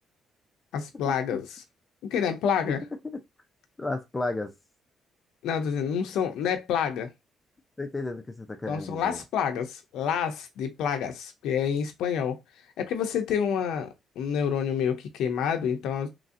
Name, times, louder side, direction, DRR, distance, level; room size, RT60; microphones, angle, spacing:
voice 1, 0.7-1.6 2.0-2.8 5.4-7.1 8.7-12.4 12.8-16.1, left 7 dB, 85° left, 0.6 m, -28 dB
voice 2, 3.8-4.5 7.8-9.2, left 2 dB, 20° left, 0.5 m, -33 dB
3.1 x 2.6 x 2.5 m
cardioid pair, 90°, 0 cm